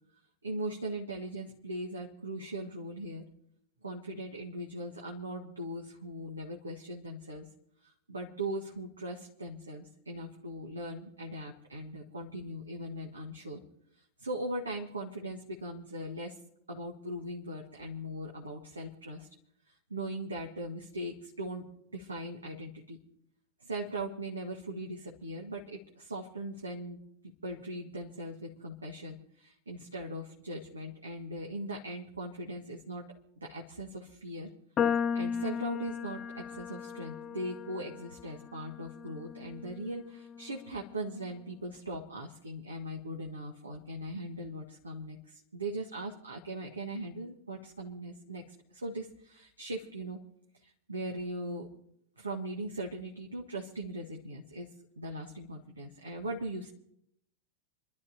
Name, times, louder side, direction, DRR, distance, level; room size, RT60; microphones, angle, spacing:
voice 1, 0.4-3.2 3.8-7.5 7.8-13.6 13.9-16.4 16.7-19.3 19.7-21.7 21.9-23.0 23.6-27.0 27.4-33.0 33.4-34.5 34.8-48.4 48.7-50.2 50.6-51.7 52.2-56.7, right 1 dB, 75° right, 1 dB, 1.6 m, -40 dB
sound 1, 34.8-41.1, left 7 dB, 25° left, 0.5 m, -36 dB
29.5 x 12.0 x 2.8 m, 0.74 s
figure-of-eight pair, 90°, 0 cm